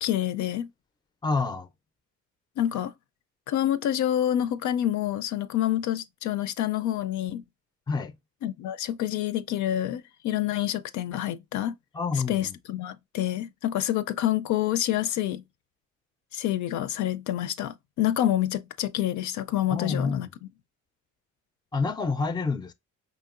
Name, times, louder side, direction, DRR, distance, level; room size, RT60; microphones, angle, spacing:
voice 1, 0.0-0.7 2.6-2.9 3.5-7.4 8.4-11.7 12.3-15.4 16.3-20.3, left 12 dB, 75° left, 0.4 m, -27 dB
voice 2, 1.2-1.7 7.9-8.1 11.9-12.5 19.7-20.3 21.7-22.7, left 4 dB, 15° left, 0.4 m, -28 dB
5.0 x 2.9 x 2.4 m
cardioid pair, 90°, 30 cm